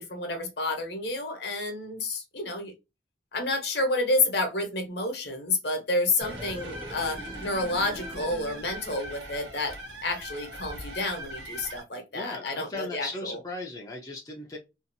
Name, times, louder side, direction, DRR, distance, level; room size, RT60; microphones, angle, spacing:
voice 1, 0.0-2.7 3.3-9.8 10.0-13.4, left 2 dB, 60° left, 0.9 m, -30 dB
sound 1, 6.2-9.3 9.6-9.7, equal, 30° right, 0.7 m, -42 dB
sound 2, 6.2-11.8, right 1 dB, 65° right, 0.9 m, -41 dB
voice 2, 12.1-14.6, left 2 dB, 20° left, 0.4 m, -37 dB
2.7 x 2.4 x 2.6 m
head